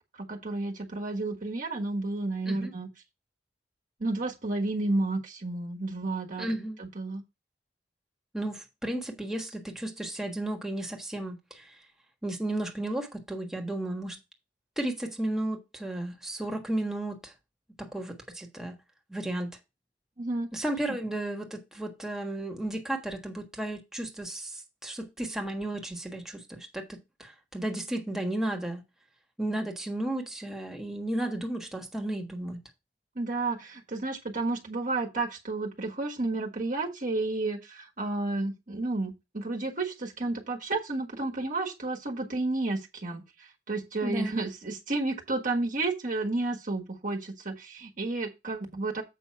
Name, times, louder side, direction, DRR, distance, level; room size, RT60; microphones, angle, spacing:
voice 1, 0.1-2.9 4.0-6.5 6.8-7.2 20.2-20.5 33.1-49.0, right 2 dB, 50° right, 1.5 m, -31 dB
voice 2, 6.4-6.8 8.3-11.7 12.2-14.2 14.8-17.3 17.8-18.8 19.1-19.6 20.5-28.8 29.4-32.6 44.0-44.3, right 1 dB, 5° right, 1.4 m, -33 dB
7.6 x 5.4 x 4.5 m
head